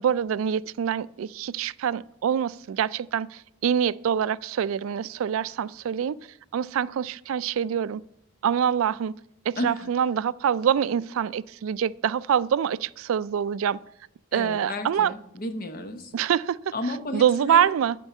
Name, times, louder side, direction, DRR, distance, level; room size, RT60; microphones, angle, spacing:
voice 1, 0.0-6.2 6.5-8.0 8.4-9.1 9.5-13.8 14.3-15.1 16.1-16.7 17.1-18.0, right 8 dB, 85° right, 0.3 m, -25 dB
voice 2, 9.6-9.9 14.3-16.1 16.7-17.7, left 1 dB, 45° left, 0.9 m, -33 dB
11.0 x 4.5 x 8.1 m
head